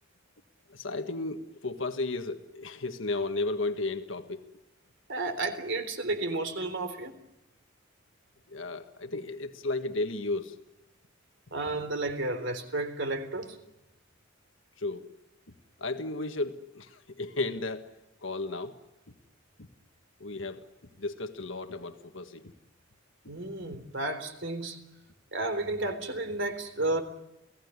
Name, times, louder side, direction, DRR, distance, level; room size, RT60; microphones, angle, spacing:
voice 1, 0.7-4.5 8.5-10.6 14.8-15.1 15.8-17.9 18.2-18.8 19.6-19.7 20.2-20.7 21.0-22.5, left 2 dB, 65° left, 7 dB, 1.6 m, -34 dB
voice 2, 5.1-7.2 11.5-13.6 23.3-24.8 25.3-27.0, right 2 dB, 60° right, 8 dB, 3.7 m, -32 dB
30.0 x 18.5 x 9.7 m, 0.92 s
head